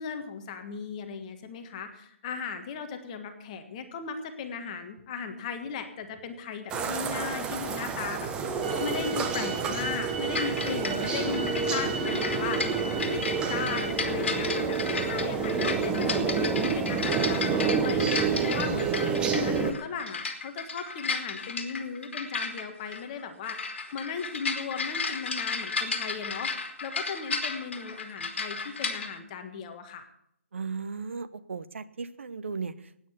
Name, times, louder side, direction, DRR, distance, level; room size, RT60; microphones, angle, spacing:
voice 1, 0.0-8.3 8.8-12.7 13.1-18.0 18.4-26.5 26.8-30.1, left 6 dB, 30° left, 7 dB, 1.6 m, -37 dB
sound 1, 6.7-19.7, right 5 dB, 10° right, 1.0 m, -29 dB
sound 2, 8.6-13.9, right 3 dB, 35° right, 2.4 m, -38 dB
sound 3, 10.3-29.1, left 4 dB, 55° left, 2.9 m, -34 dB
voice 2, 30.5-33.1, right 5 dB, 65° right, 13 dB, 1.0 m, -36 dB
16.0 x 9.5 x 6.8 m, 0.75 s
figure-of-eight pair, 145°, 7 cm